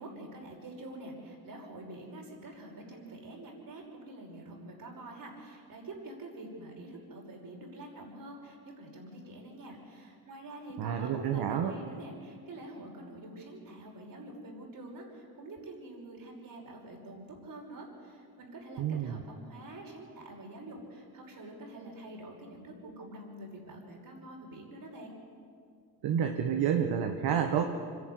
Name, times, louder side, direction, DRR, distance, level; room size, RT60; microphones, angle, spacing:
voice 1, 0.0-25.2, right 1 dB, 60° right, 0 dB, 5.7 m, -46 dB
voice 2, 10.8-11.7 18.8-19.1 26.0-27.7, right 8 dB, 80° right, 4 dB, 1.4 m, -29 dB
25.5 x 11.5 x 9.7 m, 2.3 s
cardioid pair, 85°, 37 cm